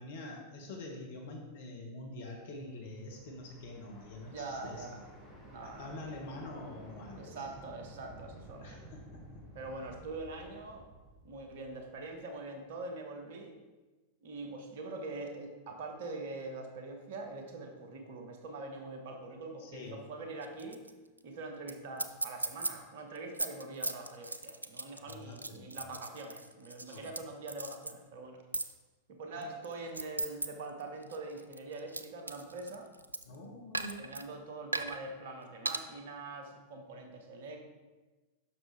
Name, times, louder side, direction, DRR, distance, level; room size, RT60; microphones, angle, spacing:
voice 1, 0.0-5.0 5.6-7.4 8.6-9.4 19.6-20.0 25.0-25.8 26.8-27.1 29.3-29.5 33.2-34.1, left 2 dB, 60° left, 0 dB, 1.1 m, -46 dB
sound 1, 2.4-12.4, right 1 dB, 15° left, 2.3 m, -53 dB
voice 2, 4.2-5.0 5.4-5.9 7.1-8.9 9.5-10.9 11.2-13.6 14.2-20.8 21.2-28.4 29.1-32.9 34.0-37.7, right 2 dB, 55° right, 4 dB, 0.9 m, -44 dB
sound 2, 20.4-20.9 21.2-21.3 21.7-21.8 22.0-22.7 23.1-27.2 27.5-27.9 28.5-28.7 29.4-30.5 30.8-33.3 33.7-34.2 34.7-35.0 35.6-35.8, right 2 dB, 80° right, 0.3 m, -37 dB
7.0 x 6.0 x 3.3 m, 1.2 s
figure-of-eight pair, 90°, 0 cm